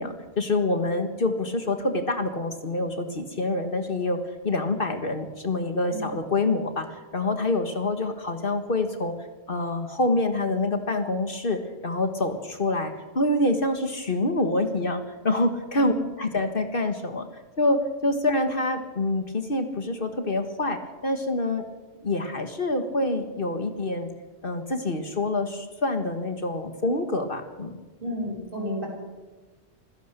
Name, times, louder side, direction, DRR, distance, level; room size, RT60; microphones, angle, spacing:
voice 1, 0.0-6.9 7.1-9.2 9.5-17.3 17.6-21.6 22.0-24.1 24.4-27.8, left 2 dB, 50° left, 7 dB, 1.8 m, -26 dB
voice 2, 28.0-28.9, equal, 50° right, -1 dB, 7.6 m, -32 dB
25.0 x 16.5 x 6.8 m, 1.2 s
omnidirectional pair, 1.2 m